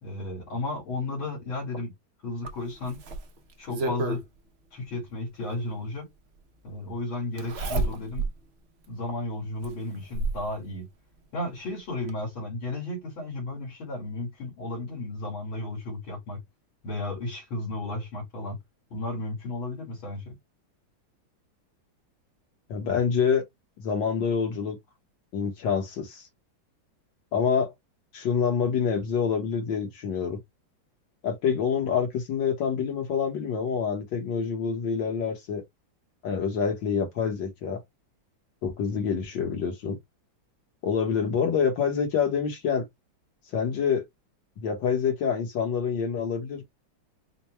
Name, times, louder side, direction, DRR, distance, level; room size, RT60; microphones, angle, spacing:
voice 1, 0.0-1.9 2.2-3.0 3.6-4.2 4.7-6.1 6.6-8.3 8.9-10.8 11.3-16.4 16.8-18.6 18.9-20.3, left 2 dB, 90° left, 3.1 m, -33 dB
Zipper (clothing), 2.4-4.2 5.7-5.8 7.4-8.4 8.8-8.9 9.6-10.5 11.7-11.8 12.1-12.2, right 3 dB, 60° right, 0.6 m, -30 dB
voice 2, 22.7-23.4 23.8-24.8 25.3-26.2 27.3-27.7 28.1-30.4 31.2-35.6 36.2-37.8 38.6-40.0 40.8-42.9 43.5-44.1 44.6-46.6, left 6 dB, 70° left, 1.9 m, -26 dB
5.1 x 2.2 x 3.2 m
omnidirectional pair, 2.1 m